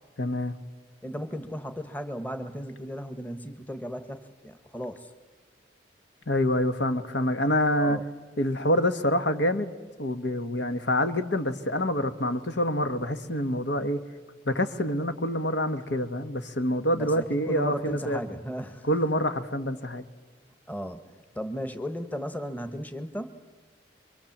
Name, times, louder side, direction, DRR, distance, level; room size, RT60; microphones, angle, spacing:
voice 1, 0.2-0.6 6.3-8.0 8.4-9.7 10.0-14.0 14.4-18.2 18.9-20.0, left 1 dB, 70° left, 8 dB, 1.5 m, -26 dB
voice 2, 1.0-5.1 7.8-8.0 16.9-18.9 20.7-23.4, equal, 10° left, 8 dB, 1.3 m, -35 dB
26.5 x 23.5 x 7.4 m, 1.4 s
head